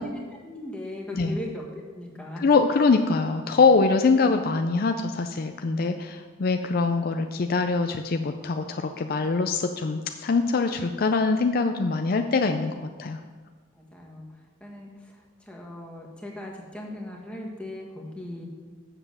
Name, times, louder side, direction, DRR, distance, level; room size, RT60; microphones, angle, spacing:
voice 1, 0.0-1.6 1.9-2.5 13.8-14.2 14.6-14.9 15.5-18.5, left 1 dB, 5° left, -2 dB, 1.5 m, -38 dB
voice 2, 2.4-13.2, left 4 dB, 50° left, 6 dB, 0.4 m, -23 dB
7.6 x 7.0 x 6.7 m, 1.5 s
head